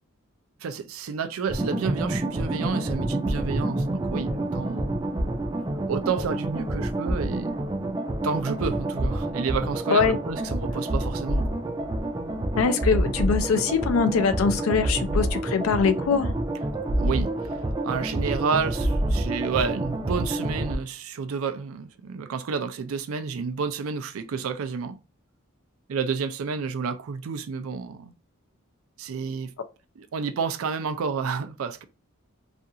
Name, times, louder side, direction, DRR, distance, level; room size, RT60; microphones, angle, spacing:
voice 1, 0.6-4.9 5.9-7.7 8.2-11.5 16.9-17.3 17.8-25.0 25.9-28.1 29.0-29.5 30.0-31.8, right 5 dB, 90° right, 0.4 m, -30 dB
sound 1, 1.5-20.7, right 1 dB, 20° right, 0.4 m, -28 dB
voice 2, 12.6-16.3, left 5 dB, 90° left, 0.4 m, -23 dB
2.5 x 2.3 x 2.7 m
head